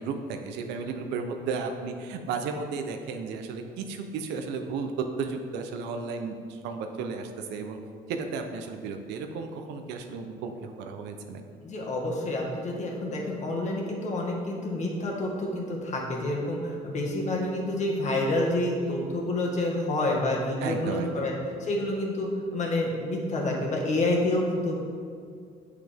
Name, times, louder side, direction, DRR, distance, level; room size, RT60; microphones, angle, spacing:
voice 1, 0.0-7.8 8.1-11.4 20.6-21.4, right 4 dB, 90° right, 5 dB, 0.7 m, -34 dB
voice 2, 11.6-21.3 21.6-24.8, left 1 dB, 45° left, -1 dB, 1.6 m, -28 dB
7.7 x 6.5 x 3.5 m, 2.3 s
cardioid pair, 110°, 17 cm